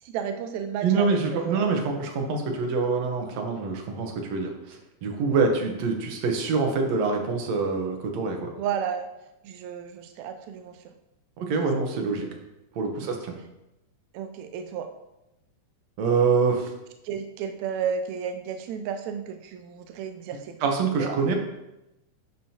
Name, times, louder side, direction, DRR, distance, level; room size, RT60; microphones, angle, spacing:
voice 1, 0.0-1.8 4.0-4.1 5.3-5.4 8.6-9.1 9.4-10.8 12.2-12.4 13.0-13.1 14.1-14.9 17.0-20.6 21.0-21.2, right 7 dB, 85° right, 7 dB, 1.6 m, -33 dB
voice 2, 0.8-8.5 11.4-12.3 12.8-13.4 16.0-16.7 20.6-21.4, right 4 dB, 65° right, 2 dB, 2.1 m, -25 dB
10.5 x 6.1 x 2.9 m, 0.92 s
omnidirectional pair, 3.7 m